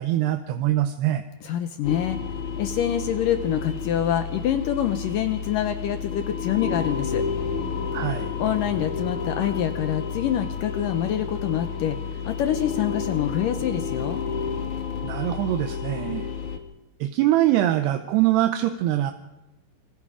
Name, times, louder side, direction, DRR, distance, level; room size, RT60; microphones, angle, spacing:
voice 1, 0.0-1.2 7.9-8.3 15.0-16.3 17.0-19.1, right 13 dB, 80° right, 7 dB, 2.8 m, -23 dB
voice 2, 1.4-2.2 2.6-7.2 8.4-12.0 12.2-14.2, left 10 dB, 75° left, 8 dB, 2.0 m, -26 dB
sound 1, 1.8-16.6, left 6 dB, 55° left, 2.6 m, -31 dB
27.5 x 21.5 x 5.0 m, 1.0 s
omnidirectional pair, 4.9 m